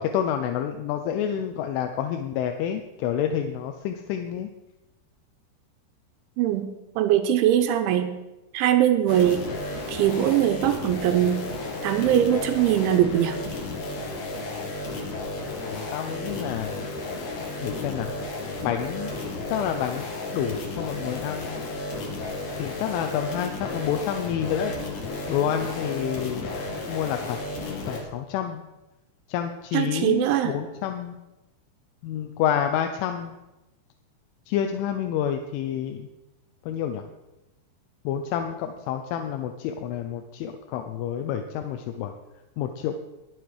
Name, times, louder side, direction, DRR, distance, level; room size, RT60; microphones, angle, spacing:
voice 1, 0.0-4.5 15.5-16.9 17.6-18.1 18.6-19.1 19.5-20.1 20.3-21.6 22.6-24.7 25.3-26.5 26.9-28.6 29.3-31.2 32.0-33.4 34.5-36.1 36.6-37.1 38.0-42.1 42.6-42.9, left 9 dB, 90° left, 6 dB, 3.2 m, -29 dB
voice 2, 6.4-6.7 7.0-8.1 8.5-9.5 9.9-11.4 11.8-13.4 29.7-30.5, right 11 dB, 85° right, 8 dB, 3.2 m, -21 dB
sound 1, 9.1-28.0, left 2 dB, 50° left, 2.7 m, -33 dB
21.0 x 7.8 x 4.8 m, 1.0 s
omnidirectional pair, 5.4 m